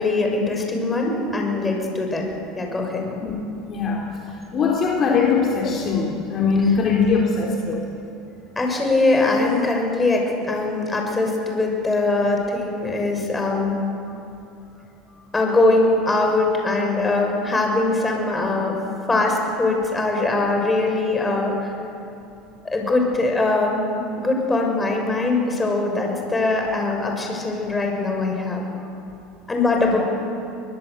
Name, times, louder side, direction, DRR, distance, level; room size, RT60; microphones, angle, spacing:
voice 1, 0.0-2.2 2.5-3.0 8.6-13.8 15.3-18.8 19.1-21.6 22.6-28.6 29.5-30.0, left 2 dB, 15° left, 1 dB, 6.6 m, -22 dB
voice 2, 3.1-3.4 3.7-4.0 4.5-7.8 9.4-9.5 29.8-30.0, left 5 dB, 40° left, -2 dB, 3.9 m, -21 dB
24.5 x 20.5 x 8.2 m, 2.7 s
supercardioid pair, 95°, 0 cm